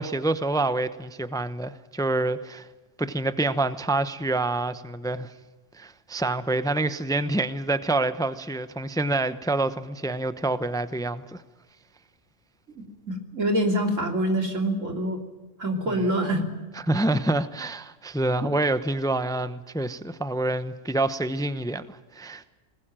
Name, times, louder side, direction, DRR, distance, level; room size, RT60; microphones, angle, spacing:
voice 1, 0.0-2.7 3.0-5.3 5.7-11.4 15.9-16.2 16.9-22.5, right 2 dB, 5° left, 0.8 m, -27 dB
voice 2, 12.8-15.2 15.6-16.5, right 1 dB, 85° right, 3.5 m, -25 dB
20.5 x 20.0 x 9.0 m
omnidirectional pair, 1.3 m